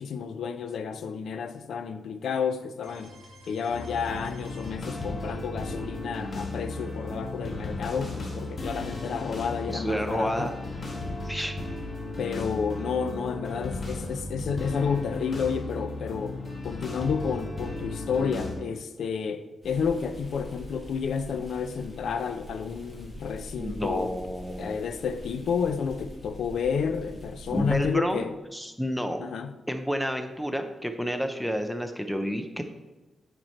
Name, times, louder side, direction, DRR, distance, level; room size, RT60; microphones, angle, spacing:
voice 1, 0.0-3.2 3.5-10.5 12.2-16.4 16.6-24.1 24.6-28.3 29.2-29.6, left 6 dB, 85° left, 0.5 m, -31 dB
sound 1, 2.8-12.6, right 1 dB, 60° right, 2.1 m, -55 dB
sound 2, 3.7-18.5, left 2 dB, 35° left, 1.3 m, -35 dB
voice 2, 9.7-10.5 11.2-11.6 23.6-24.8 27.5-29.2 29.7-32.6, equal, ahead, 0.5 m, -30 dB
sound 3, 19.6-27.8, equal, 15° left, 2.2 m, -44 dB
9.0 x 4.4 x 4.3 m
wide cardioid pair, 175°, 0 cm